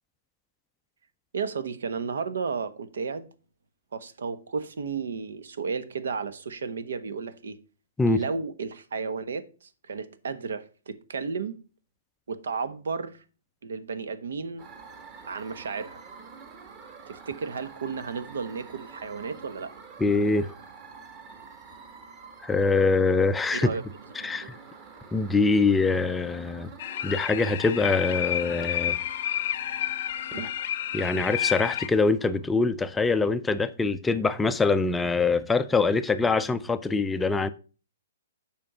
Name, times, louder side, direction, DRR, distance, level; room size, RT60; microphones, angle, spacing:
voice 1, 1.3-3.3 3.9-7.6 8.1-11.6 12.3-13.2 13.6-14.6 15.3-16.0 17.1-19.7 23.5-23.8 24.2-24.5 30.3-30.5, right 5 dB, 80° right, 1.1 m, -33 dB
sound 1, 14.6-32.6, right 5 dB, 30° right, 1.7 m, -48 dB
voice 2, 20.0-20.5 22.4-23.7 24.2-24.6 25.1-26.7 27.0-29.0 30.9-37.5, left 4 dB, 10° left, 0.4 m, -24 dB
sound 2, 26.8-31.9, left 11 dB, 50° left, 0.6 m, -30 dB
7.5 x 5.2 x 5.6 m
hypercardioid pair, 150°, 0 cm